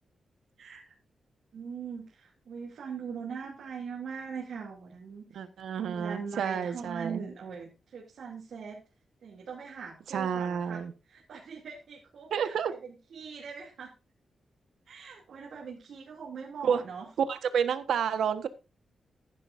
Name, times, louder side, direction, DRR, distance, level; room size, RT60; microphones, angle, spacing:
voice 1, 1.5-5.3 5.8-8.8 9.2-10.8 11.1-12.6 12.8-13.9 14.9-17.1, right 6 dB, 60° right, -2 dB, 2.8 m, -41 dB
voice 2, 5.3-7.2 10.1-10.9 12.3-12.7 16.6-16.8 17.3-18.5, right 7 dB, 85° right, 11 dB, 1.3 m, -30 dB
15.0 x 10.0 x 2.6 m, 0.30 s
wide cardioid pair, 170°, 0 cm